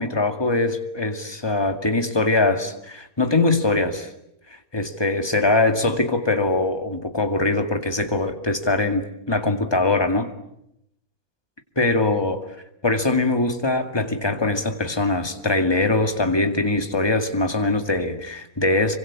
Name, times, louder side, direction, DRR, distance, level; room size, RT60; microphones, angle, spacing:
voice 1, 0.0-4.1 4.7-10.3 11.8-12.4 12.8-19.0, left 2 dB, 15° left, 2.1 m, -22 dB
27.0 x 24.5 x 8.6 m
omnidirectional pair, 1.5 m